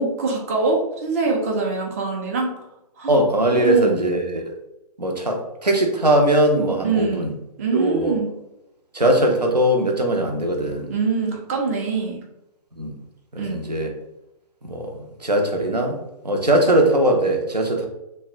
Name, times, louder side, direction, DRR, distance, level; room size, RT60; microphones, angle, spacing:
voice 1, 0.0-2.5 3.0-3.2 3.5-3.9 6.8-7.3 7.6-8.3 10.9-12.2 13.4-13.6, right 4 dB, 25° right, 0 dB, 0.3 m, -23 dB
voice 2, 3.1-4.4 5.0-7.3 7.7-8.2 8.9-10.9 12.8-12.9 13.3-13.9 14.6-16.0 16.2-17.9, right 1 dB, 90° right, 2 dB, 0.6 m, -20 dB
2.6 x 2.1 x 2.4 m, 0.88 s
figure-of-eight pair, 125°, 20 cm